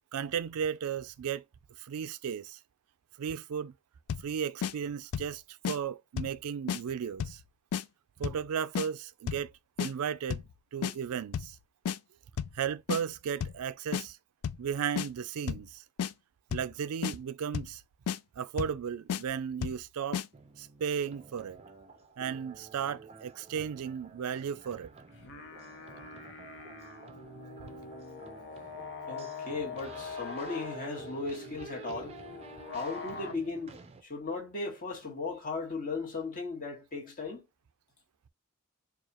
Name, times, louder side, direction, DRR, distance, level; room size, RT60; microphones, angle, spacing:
voice 1, 0.1-1.4 1.8-2.6 3.2-3.7 4.2-7.4 8.2-9.5 9.8-10.4 10.7-11.6 12.5-14.2 14.6-15.8 16.5-17.8 18.4-20.2 20.6-21.6 22.2-24.9, right 7 dB, 90° right, 0.4 m, -35 dB
sound 1, 4.1-4.3 4.6-4.7 5.1-5.4 5.7-5.8 6.2-6.4 6.7-6.8 7.2-7.4 7.7-7.8 8.2-8.5 8.8-8.9 9.3-9.5 9.8-9.9 10.3-10.5 10.8-10.9 11.3-11.6 11.9-12.0 12.4-12.6 12.9-13.0 13.4-13.6 13.9-14.1 14.4-14.7 15.0-15.1 15.5-15.7 16.0-16.1 16.5-16.7 17.0-17.2 17.5-17.8 18.1-18.2 18.6-18.8 19.1-19.2 19.6-19.8 20.1-20.3, left 8 dB, 80° left, 0.4 m, -32 dB
sound 2, 20.3-34.0, right 4 dB, 30° right, 0.5 m, -50 dB
sound 3, 25.1-33.3, left 5 dB, 55° left, 0.7 m, -44 dB
voice 2, 29.1-32.2 32.7-37.4, left 3 dB, 40° left, 1.5 m, -37 dB
4.6 x 2.4 x 2.8 m
head